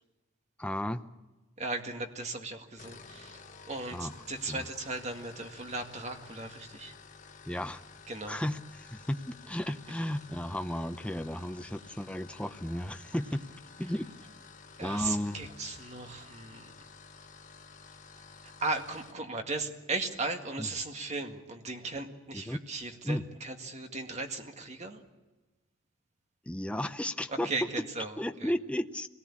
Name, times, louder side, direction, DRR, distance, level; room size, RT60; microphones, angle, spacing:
voice 1, 0.6-1.0 3.9-4.1 4.5-4.7 7.5-7.8 8.3-14.1 14.8-15.4 20.6-20.7 22.5-22.6 23.0-23.2 26.5-27.5 28.2-29.1, left 1 dB, 5° left, 9 dB, 0.7 m, -34 dB
voice 2, 1.6-3.4 3.7-6.9 8.1-8.4 14.8-16.7 18.2-25.0 27.3-28.5, right 3 dB, 35° right, 5 dB, 2.0 m, -37 dB
sound 1, 2.8-19.2, left 5 dB, 40° left, 1.3 m, -52 dB
24.0 x 18.5 x 8.6 m, 1.2 s
head